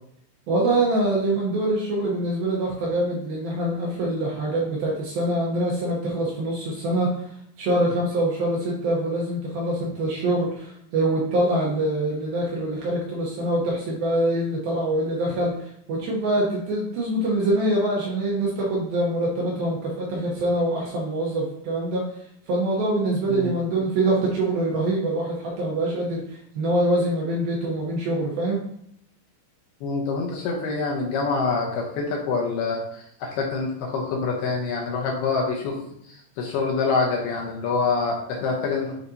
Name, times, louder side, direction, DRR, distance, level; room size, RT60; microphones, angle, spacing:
voice 1, 0.5-7.1 7.6-22.0 22.5-28.6, right 1 dB, 70° right, -4 dB, 2.4 m, -24 dB
voice 2, 29.8-35.8 36.0-39.0, left 4 dB, 75° left, -1 dB, 2.6 m, -26 dB
9.2 x 4.2 x 2.7 m, 0.69 s
omnidirectional pair, 5.3 m